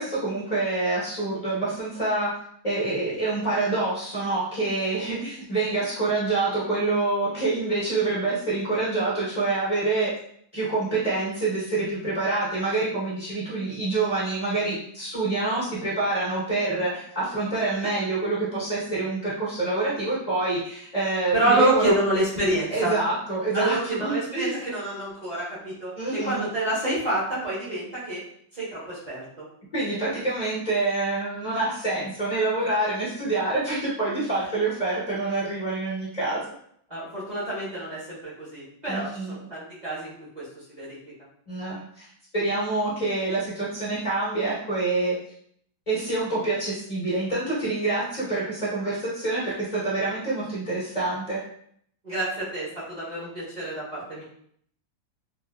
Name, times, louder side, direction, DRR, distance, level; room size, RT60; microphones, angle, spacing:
voice 1, 0.0-2.3 2.6-10.1 10.5-22.0 22.7-24.5 25.9-26.5 29.7-36.4 38.9-39.4 41.5-42.1 42.3-45.1 45.9-51.4, right 3 dB, 35° left, -9 dB, 0.7 m, -26 dB
voice 2, 21.3-22.9 23.5-28.2 28.5-29.5 36.9-41.0 52.0-54.2, right 1 dB, 30° right, -10 dB, 0.9 m, -27 dB
3.8 x 2.4 x 2.2 m, 0.67 s
omnidirectional pair, 2.1 m